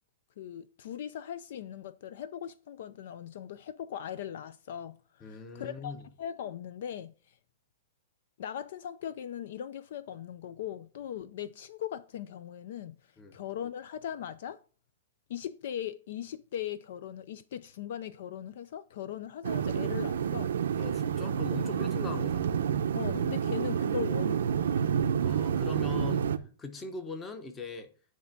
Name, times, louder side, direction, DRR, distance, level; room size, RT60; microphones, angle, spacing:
voice 1, 0.4-7.4 8.4-13.0 13.3-14.6 15.3-20.6 22.9-24.8, left 10 dB, 50° left, 0.3 m, -39 dB
voice 2, 5.2-6.1 13.2-13.3 20.8-22.6 25.2-26.3 26.6-27.9, left 4 dB, 10° left, 0.7 m, -40 dB
sound 1, 19.4-26.4, right 8 dB, 80° right, 0.6 m, -29 dB
9.2 x 3.3 x 5.8 m
hypercardioid pair, 175°, 0 cm